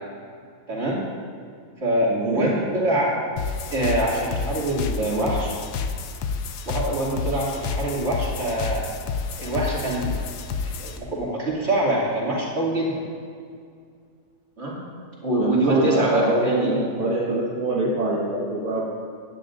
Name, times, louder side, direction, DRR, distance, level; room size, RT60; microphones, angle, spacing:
voice 1, 0.7-1.0 1.8-3.1 3.7-5.5 6.7-8.8 9.4-10.1 10.6-13.0 14.6-14.8 15.2-16.8, right 1 dB, 45° right, -6 dB, 2.9 m, -24 dB
voice 2, 2.1-2.5 5.0-5.3 15.4-18.9, right 1 dB, 60° right, -7 dB, 2.0 m, -24 dB
sound 1, 3.4-11.0, left 5 dB, 85° left, 1.3 m, -30 dB
17.0 x 10.5 x 2.6 m, 2.2 s
omnidirectional pair, 1.7 m